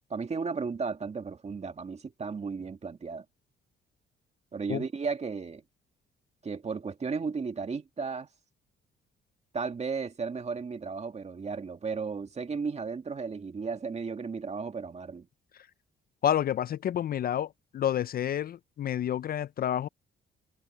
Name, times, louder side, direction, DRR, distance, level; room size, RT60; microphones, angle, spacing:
voice 1, 0.1-3.3 4.5-5.6 6.4-8.3 9.5-15.3, right 5 dB, 35° right, 1.9 m, -34 dB
voice 2, 16.2-17.5 17.7-19.9, left 10 dB, 50° left, 0.4 m, -29 dB
cardioid pair, 90°, 20 cm